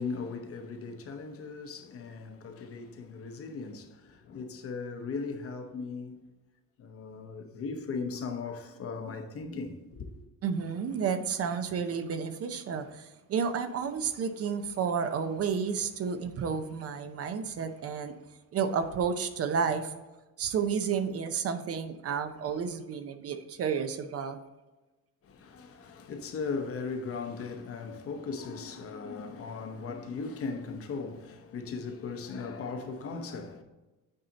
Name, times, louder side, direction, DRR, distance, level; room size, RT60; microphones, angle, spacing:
voice 1, 0.0-6.2 6.8-10.1 25.2-33.6, left 4 dB, 45° left, 0.9 m, -38 dB
voice 2, 10.4-18.2 18.5-19.9 20.4-24.4, right 6 dB, 45° right, 0.6 m, -31 dB
8.9 x 4.1 x 3.9 m
cardioid pair, 180°, 32 cm